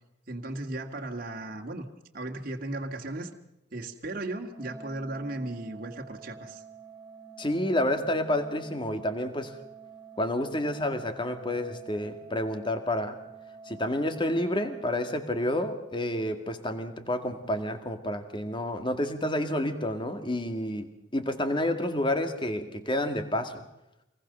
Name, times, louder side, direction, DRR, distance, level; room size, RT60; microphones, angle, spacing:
voice 1, 0.3-1.9 2.1-3.3 3.7-6.6, right 2 dB, 45° right, 2 dB, 2.0 m, -36 dB
Organ, 4.5-15.5, right 6 dB, 20° right, 3.1 m, -48 dB
voice 2, 7.4-9.6 10.2-13.2 13.7-23.6, left 1 dB, 25° left, 8 dB, 2.0 m, -29 dB
25.0 x 20.0 x 6.8 m, 0.90 s
head